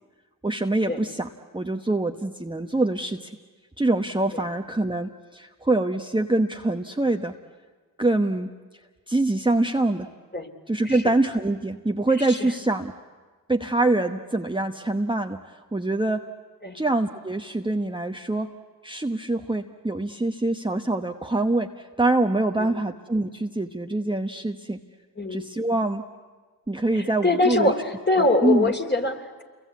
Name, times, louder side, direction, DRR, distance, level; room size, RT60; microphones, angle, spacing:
voice 1, 0.4-3.3 3.8-7.3 8.0-8.5 9.1-10.1 10.7-12.9 13.5-16.2 16.7-18.5 18.8-24.8 25.3-26.0 26.7-27.7 28.4-28.7, right 2 dB, 10° right, 4 dB, 1.1 m, -25 dB
voice 2, 10.8-11.2 12.2-12.5 16.6-16.8 22.6-22.7 25.2-25.4 26.9-29.4, left 2 dB, 25° left, 5 dB, 3.1 m, -24 dB
28.5 x 23.0 x 8.4 m, 1.4 s
supercardioid pair, 40°, 43 cm